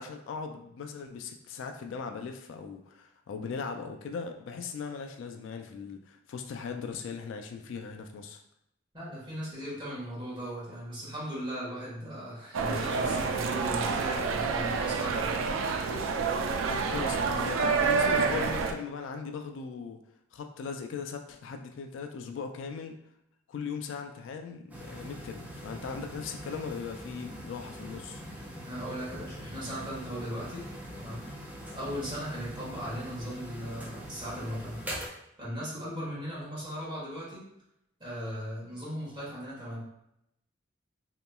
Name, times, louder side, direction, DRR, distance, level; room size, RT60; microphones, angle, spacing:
voice 1, 0.0-8.4 16.7-20.0 20.3-22.9 23.5-28.2, left 5 dB, 70° left, 5 dB, 0.3 m, -39 dB
voice 2, 8.9-15.5 28.6-30.6 30.9-31.3 31.7-34.8 35.4-37.4 38.0-39.8, equal, 25° right, -8 dB, 1.3 m, -38 dB
sound 1, 12.5-18.7, right 5 dB, 80° right, 0.3 m, -28 dB
sound 2, 24.7-35.1, equal, 10° right, 0.4 m, -42 dB
2.9 x 2.9 x 2.2 m, 0.80 s
head